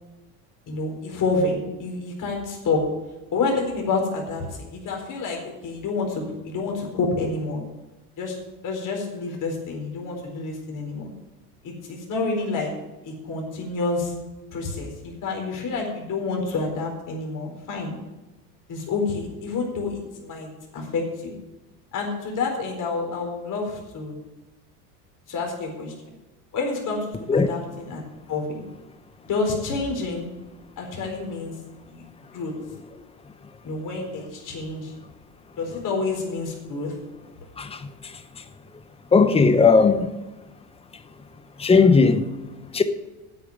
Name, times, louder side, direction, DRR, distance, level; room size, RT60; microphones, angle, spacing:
voice 1, 0.7-2.8 3.3-7.6 8.2-8.4 8.6-11.1 11.6-12.7 13.0-14.1 14.5-17.9 18.7-21.3 21.9-24.1 25.3-25.9 26.5-28.6 29.3-30.3 30.8-31.5 31.9-32.0 32.3-32.5 33.6-34.9 35.6-36.9, left 3 dB, 40° left, 4.3 m, -28 dB
voice 2, 39.1-40.1 41.6-42.2 42.7-42.8, left 4 dB, 15° left, 0.9 m, -16 dB
9.5 x 8.4 x 8.0 m
supercardioid pair, 105°, 46 cm